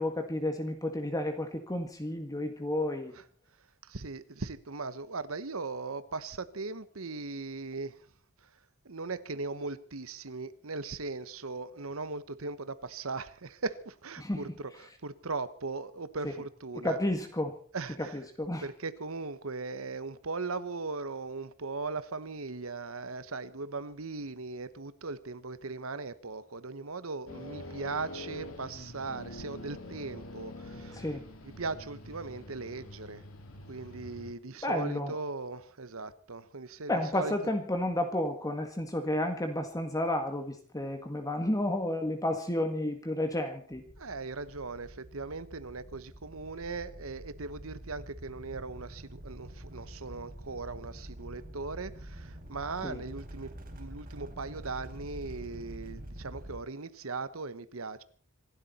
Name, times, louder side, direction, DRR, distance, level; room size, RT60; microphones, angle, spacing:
voice 1, 0.0-3.1 14.2-14.4 16.8-17.5 18.0-18.6 30.9-31.3 34.6-35.1 36.9-43.8 52.8-53.0, left 1 dB, 15° left, 1.8 m, -31 dB
voice 2, 3.8-8.1 8.4-8.5 8.8-17.0 17.7-18.2 18.6-31.1 31.4-33.2 33.7-37.3 44.0-58.0, right 3 dB, 80° right, 1.2 m, -39 dB
sound 1, 27.3-34.3, left 1 dB, 80° left, 3.2 m, -45 dB
sound 2, 43.7-56.6, equal, 45° right, 3.6 m, -46 dB
26.0 x 12.0 x 4.3 m
head